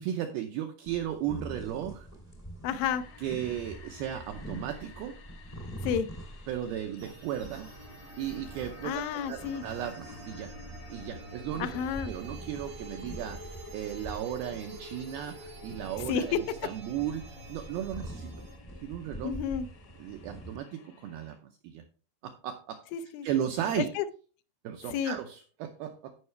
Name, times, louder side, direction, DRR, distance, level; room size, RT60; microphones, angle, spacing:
voice 1, 0.0-2.1 3.2-5.1 6.5-7.7 8.2-10.5 10.9-11.7 12.1-17.2 17.5-18.3 18.8-19.3 20.0-21.4 21.6-21.8 22.2-22.8 23.2-23.9 24.6-26.2, right 10 dB, 90° right, 5 dB, 2.2 m, -35 dB
sound 1, 0.8-20.5, right 1 dB, 45° left, 0.4 m, -45 dB
voice 2, 2.6-3.0 5.8-6.1 8.8-9.6 11.6-12.1 16.1-16.4 19.2-19.7 22.9-23.3 23.8-24.1 24.9-25.2, left 8 dB, 85° left, 13 dB, 3.0 m, -30 dB
sound 2, 2.8-21.4, left 4 dB, 65° left, 1.6 m, -51 dB
sound 3, 7.0-18.6, right 4 dB, 75° right, 0.8 m, -49 dB
14.0 x 5.6 x 3.2 m, 0.39 s
omnidirectional pair, 5.3 m